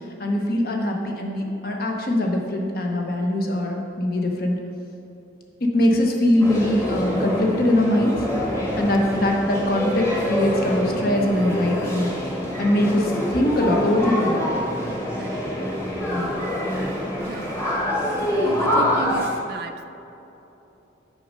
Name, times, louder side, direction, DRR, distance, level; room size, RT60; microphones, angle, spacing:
voice 1, 0.2-4.6 5.7-8.3 8.8-12.1 12.6-14.4 16.1-16.3, left 1 dB, 50° left, 1 dB, 0.9 m, -22 dB
sound 1, 6.4-19.3, equal, 15° left, 1.2 m, -25 dB
voice 2, 15.2-15.5 17.2-17.6 18.4-19.8, right 4 dB, 55° right, 8 dB, 0.4 m, -35 dB
6.4 x 5.4 x 5.2 m, 2.9 s
head